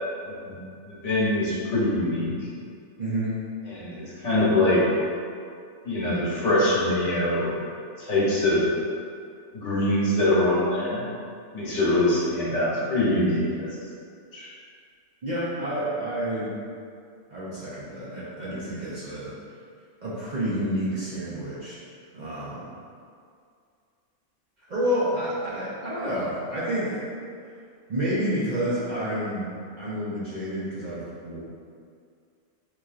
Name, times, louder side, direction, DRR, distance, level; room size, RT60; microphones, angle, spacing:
voice 1, 0.8-2.3 3.7-4.8 5.8-7.5 8.0-8.6 9.5-11.0 11.5-13.7 14.3-14.5, left 1 dB, 70° left, -7 dB, 1.2 m, -23 dB
voice 2, 3.0-3.4 15.2-16.5 17.3-19.3 20.0-21.8 22.1-22.7 24.7-27.0 27.9-31.4, equal, 45° right, -9 dB, 0.6 m, -29 dB
4.7 x 2.7 x 2.4 m, 2.3 s
omnidirectional pair, 1.3 m